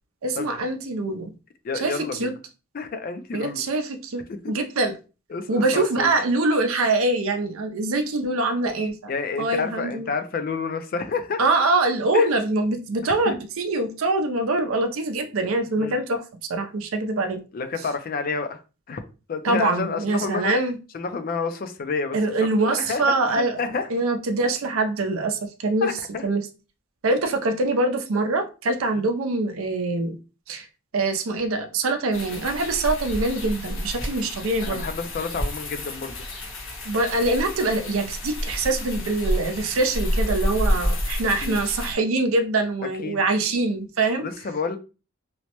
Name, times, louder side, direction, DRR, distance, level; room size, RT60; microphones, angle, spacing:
voice 1, 0.2-1.3 1.8-2.3 3.3-4.9 5.5-9.1 9.4-10.1 11.4-16.2 16.5-17.4 19.4-20.8 22.1-23.6 23.9-25.9 26.2-26.4 27.0-30.2 30.5-30.7 30.9-34.8 36.8-44.3, right 2 dB, 80° right, 0.5 m, -24 dB
voice 2, 1.6-2.3 2.7-3.6 5.3-6.1 9.1-11.4 12.1-12.3 13.2-13.3 15.8-16.0 17.5-18.6 18.9-19.0 19.3-20.6 20.9-23.9 25.8-26.2 28.9-29.0 34.6-36.2 41.4-41.6 43.0-43.2 44.2-44.8, left 4 dB, 45° left, 0.3 m, -29 dB
sound 1, 32.1-41.9, equal, 70° left, 0.9 m, -29 dB
3.0 x 2.1 x 2.9 m
head